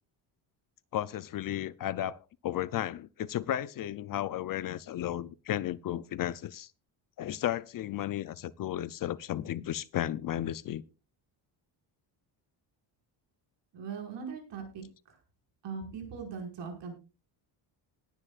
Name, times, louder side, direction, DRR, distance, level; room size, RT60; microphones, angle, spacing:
voice 1, 0.9-6.7 7.2-10.8, left 12 dB, 45° left, 0.5 m, -34 dB
voice 2, 13.7-15.2 15.6-16.9, right 5 dB, 65° right, 5.4 m, -40 dB
20.5 x 9.8 x 2.4 m
cardioid pair, 170°, 46 cm